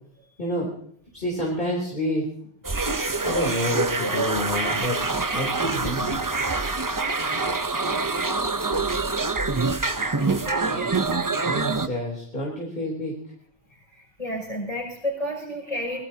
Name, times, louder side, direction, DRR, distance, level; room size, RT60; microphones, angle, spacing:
voice 1, 1.1-2.2 3.2-5.0 5.3-6.2 11.5-13.1, left 1 dB, 50° left, -2 dB, 3.4 m, -28 dB
sound 1, 2.6-11.9, right 3 dB, 20° right, 0.6 m, -25 dB
voice 2, 10.2-11.1 13.9-16.0, equal, 35° left, -1 dB, 6.3 m, -32 dB
23.5 x 19.0 x 2.8 m, 0.65 s
omnidirectional pair, 1.2 m